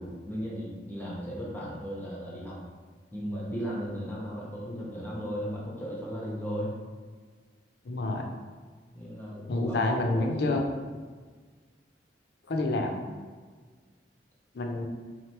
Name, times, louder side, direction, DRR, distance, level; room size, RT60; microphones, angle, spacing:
voice 1, 0.0-2.6 3.1-6.7 8.9-10.6, equal, 10° left, -5 dB, 0.6 m, -36 dB
voice 2, 7.9-8.3 9.5-10.6 12.5-13.0 14.5-14.8, left 2 dB, 65° left, 2 dB, 0.5 m, -28 dB
3.8 x 3.2 x 2.9 m, 1.5 s
head